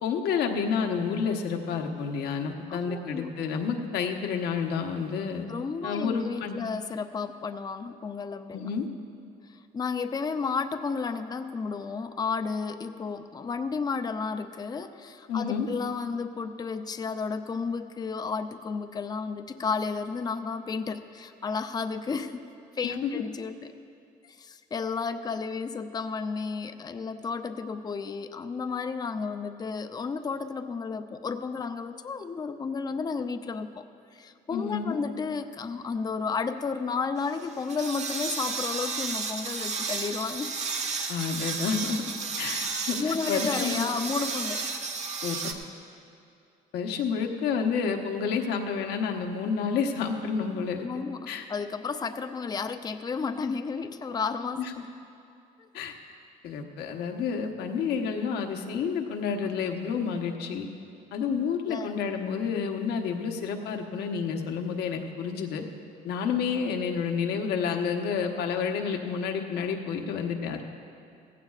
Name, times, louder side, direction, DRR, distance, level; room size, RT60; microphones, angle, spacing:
voice 1, 0.0-5.4 5.8-6.6 8.5-8.9 15.3-15.7 22.8-23.2 34.5-35.0 41.1-42.0 42.4-43.9 45.2-45.3 46.7-50.9 51.3-51.4 54.6-54.7 55.7-55.9 56.4-60.7 61.1-65.6 66.0-70.6, left 6 dB, 75° left, 3 dB, 1.1 m, -29 dB
voice 2, 2.7-3.3 5.5-8.7 9.5-22.4 22.8-23.7 24.3-33.9 34.1-40.5 42.8-44.8 50.8-54.6 61.7-61.9, left 5 dB, 25° left, 8 dB, 0.5 m, -32 dB
sound 1, 37.2-45.5, right 4 dB, 40° right, 1.1 m, -33 dB
16.0 x 15.5 x 2.4 m, 2.6 s
cardioid pair, 110°, 17 cm